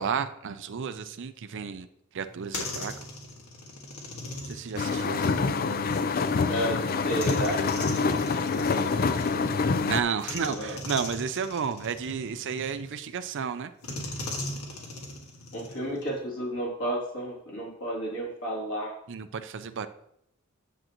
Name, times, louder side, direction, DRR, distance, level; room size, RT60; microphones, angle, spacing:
voice 1, 0.0-1.9 2.1-2.9 4.4-5.4 9.9-13.7 19.1-19.9, right 6 dB, 55° right, 11 dB, 0.5 m, -32 dB
sound 1, 2.2-6.1 7.1-9.7 10.2-13.1 13.8-16.2, left 2 dB, 75° left, 1.8 m, -39 dB
sound 2, 4.8-10.0, left 4 dB, 40° left, 0.4 m, -26 dB
voice 2, 6.5-7.6 7.9-9.5 10.3-10.8 15.5-18.9, right 1 dB, 60° left, -4 dB, 3.1 m, -33 dB
9.9 x 7.6 x 3.0 m, 0.79 s
head